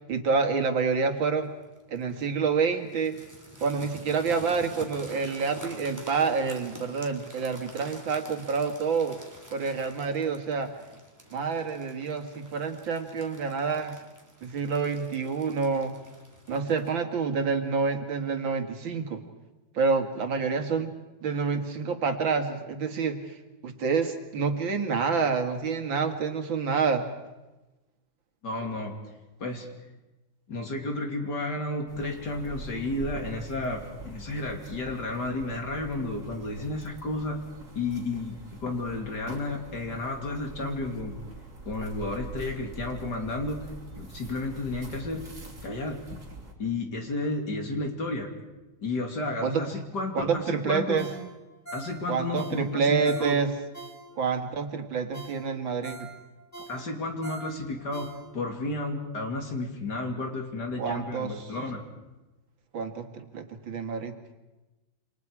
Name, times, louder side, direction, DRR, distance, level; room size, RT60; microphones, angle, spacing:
voice 1, 0.1-1.5 1.9-3.2 3.6-9.2 9.5-10.7 11.3-14.0 14.4-16.0 16.5-19.2 19.7-20.9 21.2-23.2 23.6-27.1 49.4-49.7 50.1-51.1 52.1-53.5 54.2-56.1 60.8-61.3 62.7-63.1 63.3-64.1, right 5 dB, 85° right, 6 dB, 2.7 m, -28 dB
sound 1, 1.6-2.0 2.9-17.0, right 1 dB, 10° right, 3.3 m, -47 dB
voice 2, 28.4-28.9 29.4-29.7 30.5-37.4 37.7-41.2 41.7-43.6 44.0-45.2 45.6-46.0 46.6-48.3 48.8-51.0 51.7-53.4 56.7-61.8, left 2 dB, 60° left, 2 dB, 3.5 m, -32 dB
sound 2, 31.9-46.5, right 2 dB, 40° right, 3.7 m, -44 dB
Ringtone, 51.0-54.4 54.8-54.9 55.1-58.6 59.0-59.1, right 3 dB, 10° left, 3.6 m, -45 dB
29.0 x 25.5 x 4.8 m, 1.1 s
omnidirectional pair, 2.1 m